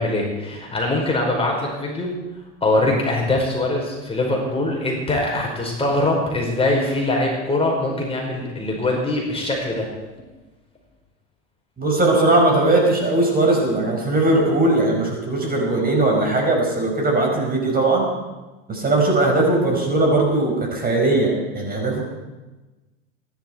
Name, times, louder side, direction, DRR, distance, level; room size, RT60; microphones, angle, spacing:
voice 1, 0.0-2.1 2.6-9.9, left 2 dB, 15° left, -1 dB, 5.0 m, -22 dB
voice 2, 11.8-18.1 18.7-22.0, right 2 dB, 25° right, 0 dB, 5.6 m, -19 dB
25.0 x 11.5 x 4.6 m, 1.1 s
hypercardioid pair, 90°, 36 cm